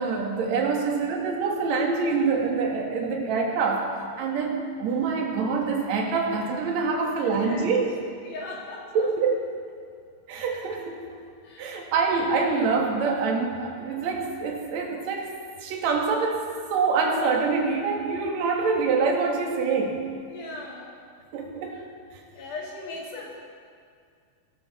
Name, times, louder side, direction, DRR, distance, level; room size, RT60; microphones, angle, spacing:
voice 1, 0.0-3.9 4.2-7.9 8.9-9.4 10.3-11.2 11.6-15.3 15.6-16.4 16.7-20.1 21.3-21.8, right 4 dB, 55° right, 0 dB, 2.5 m, -25 dB
voice 2, 7.0-7.7 8.2-9.1 11.4-11.8 20.3-20.9 21.7-21.8 22.3-23.3, left 2 dB, 75° left, -4 dB, 4.2 m, -39 dB
16.5 x 12.0 x 4.1 m, 2.2 s
omnidirectional pair, 4.3 m